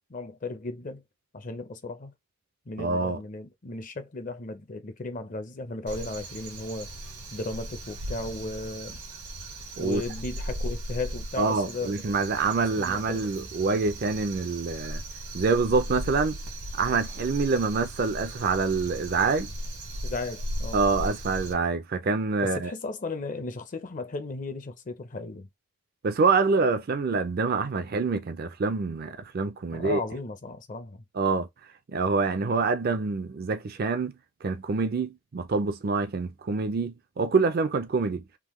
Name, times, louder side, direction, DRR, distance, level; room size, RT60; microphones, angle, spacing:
voice 1, 0.1-1.0 1.3-2.1 2.7-6.9 7.3-9.0 9.8-12.0 12.8-13.2 20.0-20.8 22.4-25.5 29.7-31.0, left 3 dB, 35° left, 0.5 m, -35 dB
voice 2, 2.8-3.2 9.8-10.0 11.4-15.0 15.3-16.4 16.7-19.5 20.7-22.7 26.0-30.0 31.1-31.5 31.9-34.1 34.4-38.2, right 4 dB, 40° right, 0.4 m, -26 dB
Crow, 5.9-21.5, right 1 dB, 85° right, 1.3 m, -37 dB
3.5 x 2.1 x 3.0 m
head